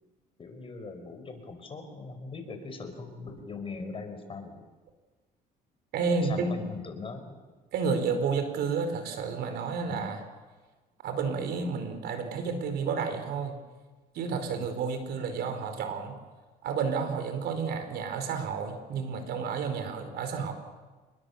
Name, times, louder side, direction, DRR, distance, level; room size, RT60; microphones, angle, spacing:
voice 1, 0.4-4.6 6.1-7.4 8.1-8.2 9.9-10.1 14.5-14.7, left 4 dB, 30° left, 6 dB, 5.0 m, -40 dB
voice 2, 5.9-6.6 7.7-10.2 11.0-13.5 14.1-16.2 16.6-20.5, right 5 dB, 75° right, 7 dB, 4.6 m, -31 dB
27.5 x 21.5 x 7.2 m, 1.3 s
cardioid pair, 110°, 17 cm